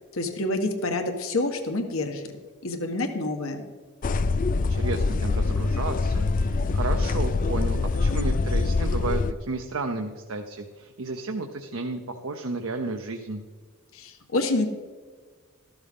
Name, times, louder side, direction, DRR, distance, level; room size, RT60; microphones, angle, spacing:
voice 1, 0.1-2.4 2.6-3.6 13.9-14.7, left 2 dB, 75° left, 5 dB, 1.3 m, -27 dB
sound 1, 4.0-9.3, left 3 dB, 40° left, 0.4 m, -24 dB
voice 2, 4.7-13.4, right 3 dB, 75° right, 5 dB, 0.9 m, -32 dB
13.5 x 12.5 x 3.7 m, 1.5 s
head